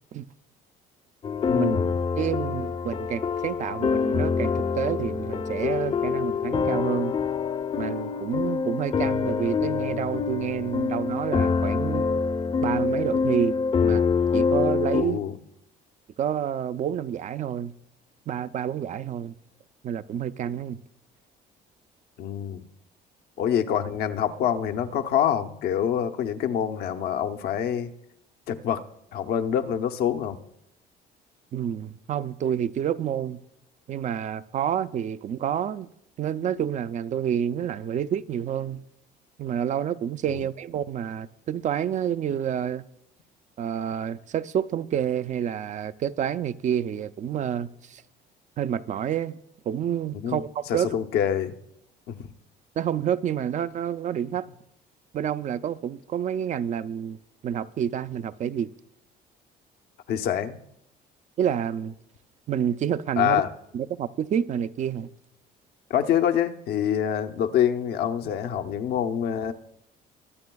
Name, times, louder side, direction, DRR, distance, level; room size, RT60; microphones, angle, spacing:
sound 1, 1.2-15.0, left 5 dB, 35° left, 0.7 m, -25 dB
voice 1, 1.5-2.0 14.9-15.4 22.2-22.6 23.4-27.9 28.5-28.8 29.1-30.4 40.3-40.4 50.1-51.6 52.1-52.3 60.1-60.6 63.2-63.5 65.9-69.5, left 9 dB, 70° left, 0.8 m, -26 dB
voice 2, 2.2-7.1 7.8-12.1 12.6-13.6 13.8-14.0 14.3-15.2 16.2-17.7 18.3-19.3 19.8-20.8 31.5-33.4 33.9-35.9 36.2-38.8 39.4-42.8 43.6-48.0 48.6-49.4 49.7-50.9 52.8-54.4 55.1-57.2 57.4-58.7 61.4-61.9 62.5-63.4 63.7-65.1, right 9 dB, 45° right, 0.5 m, -28 dB
22.5 x 8.9 x 2.3 m
cardioid pair, 110°, 17 cm